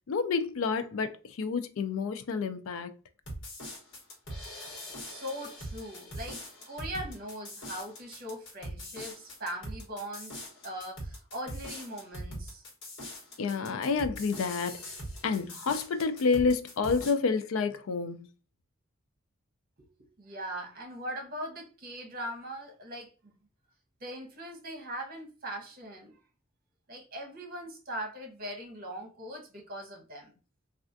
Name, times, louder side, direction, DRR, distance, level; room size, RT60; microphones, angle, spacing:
voice 1, 0.1-2.9 13.4-14.8 15.2-18.3, left 4 dB, 85° left, 0.4 m, -29 dB
sound 1, 3.3-17.1, equal, 65° left, 1.2 m, -42 dB
voice 2, 4.9-12.7 19.8-23.3 24.0-26.2 26.9-30.3, equal, 45° right, 1.1 m, -40 dB
3.3 x 2.4 x 2.5 m
head